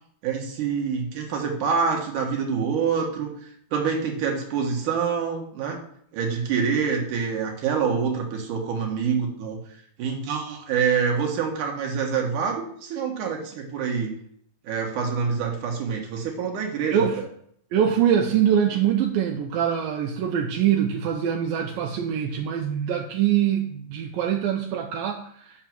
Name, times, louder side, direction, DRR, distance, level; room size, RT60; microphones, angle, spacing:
voice 1, 0.2-5.8 6.1-9.6 10.0-14.2 14.6-17.3, right 6 dB, 65° right, 1 dB, 2.8 m, -26 dB
voice 2, 16.9-17.2 17.7-25.7, right 9 dB, 80° right, 2 dB, 2.4 m, -24 dB
6.6 x 6.0 x 6.0 m, 0.65 s
omnidirectional pair, 4.2 m